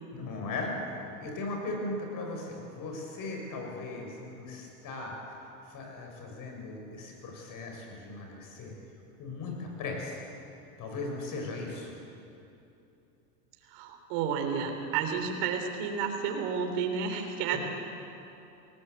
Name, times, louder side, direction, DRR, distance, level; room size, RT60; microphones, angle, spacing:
voice 1, 0.1-5.1 5.7-8.7 9.2-10.2 10.8-12.0 17.5-17.6, left 2 dB, 45° left, 1 dB, 6.8 m, -38 dB
voice 2, 13.7-17.6, right 6 dB, 60° right, 3 dB, 3.6 m, -31 dB
19.5 x 19.0 x 8.3 m, 2.8 s
supercardioid pair, 110°, 47 cm